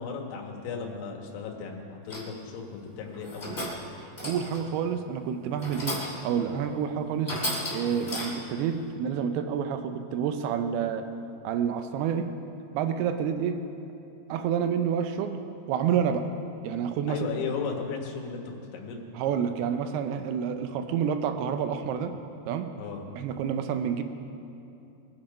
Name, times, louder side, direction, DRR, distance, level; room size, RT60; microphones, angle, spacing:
voice 1, 0.0-3.7 17.1-19.0 22.8-23.1, left 5 dB, 80° left, 1 dB, 3.8 m, -35 dB
sound 1, 2.1-2.4 3.1-3.9 4.2-4.7 5.6-6.3 6.7-6.8 7.2-8.6, left 1 dB, 15° left, 2.4 m, -34 dB
voice 2, 4.2-6.0 6.2-7.4 7.7-11.0 11.4-12.3 12.7-13.6 14.3-15.4 15.7-16.3 16.6-17.2 19.1-22.2 22.5-22.7 23.1-24.0, right 8 dB, 80° right, 8 dB, 2.3 m, -28 dB
23.5 x 8.7 x 5.2 m, 2.8 s
omnidirectional pair, 5.4 m